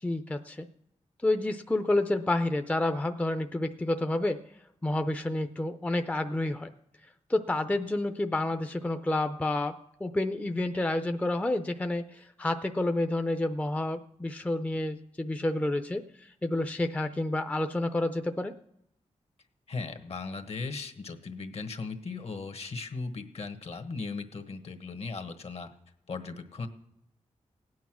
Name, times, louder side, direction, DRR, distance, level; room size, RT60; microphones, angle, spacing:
voice 1, 0.0-0.7 1.2-4.4 4.8-6.7 7.3-9.7 10.0-18.5, left 2 dB, 10° left, 7 dB, 0.5 m, -29 dB
voice 2, 19.7-25.7 26.1-26.7, left 4 dB, 60° left, 8 dB, 1.3 m, -37 dB
17.0 x 9.5 x 6.1 m, 0.77 s
wide cardioid pair, 125°, 12 cm